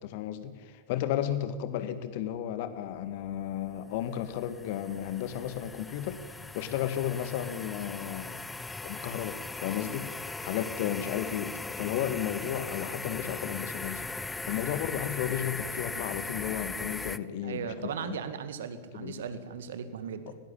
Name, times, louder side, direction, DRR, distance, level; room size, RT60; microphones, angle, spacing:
voice 1, 0.0-6.2 6.5-8.4 8.8-18.2 18.9-19.2, left 11 dB, 50° left, 11 dB, 1.8 m, -34 dB
sound 1, 3.3-17.2, left 3 dB, 10° left, 0.7 m, -39 dB
voice 2, 17.4-20.4, right 6 dB, 60° right, 11 dB, 1.9 m, -37 dB
20.5 x 17.5 x 8.9 m, 1.5 s
figure-of-eight pair, 90°, 0 cm